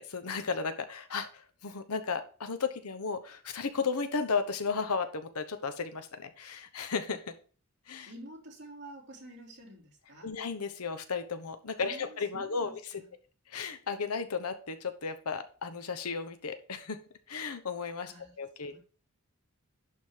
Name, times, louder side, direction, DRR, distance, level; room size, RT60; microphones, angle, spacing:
voice 1, 0.0-7.2 7.9-8.1 10.2-12.8 13.5-17.0 17.3-18.1 18.4-18.8, left 5 dB, 90° left, 9 dB, 1.0 m, -34 dB
voice 2, 8.1-10.4 11.8-13.1 18.0-18.3 18.6-18.8, right 1 dB, 55° right, -2 dB, 3.2 m, -49 dB
11.0 x 3.7 x 4.6 m, 0.39 s
head